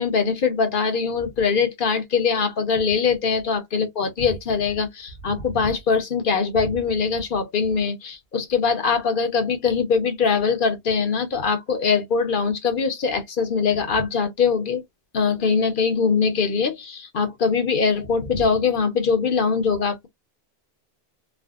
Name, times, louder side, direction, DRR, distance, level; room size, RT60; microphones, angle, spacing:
voice 1, 0.0-14.8 15.1-20.1, left 5 dB, 60° left, 0.9 m, -22 dB
3.3 x 2.1 x 2.3 m
omnidirectional pair, 1.1 m